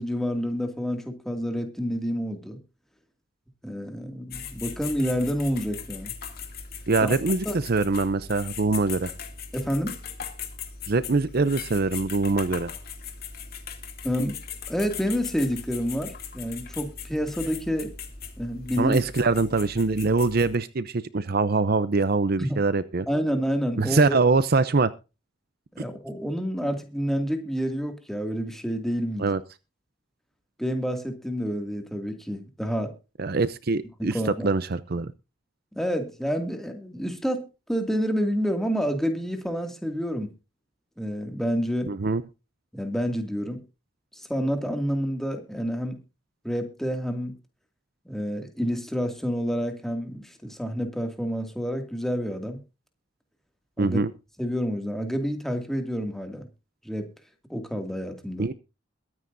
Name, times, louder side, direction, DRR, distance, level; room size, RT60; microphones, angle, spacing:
voice 1, 0.0-2.6 3.6-6.1 7.0-7.1 7.5-7.6 9.5-9.9 14.0-14.4 14.7-17.9 18.4-19.0 22.4-22.6 23.1-24.2 25.7-29.3 30.6-32.9 34.1-34.5 35.7-40.3 41.0-41.9 42.7-43.6 44.2-46.0 46.4-47.3 48.1-52.6 53.8-54.0 54.4-56.5 56.8-57.1 57.5-58.5, equal, ahead, 5 dB, 2.3 m, -28 dB
sound 1, 4.3-20.6, left 6 dB, 50° left, 2.6 m, -39 dB
voice 2, 6.9-9.1 10.9-12.7 18.8-23.1 23.8-24.9 29.2-29.4 33.2-35.1 41.9-42.2 53.8-54.1 58.4-58.5, right 3 dB, 50° right, 15 dB, 0.6 m, -23 dB
22.0 x 9.5 x 2.7 m, 0.30 s
head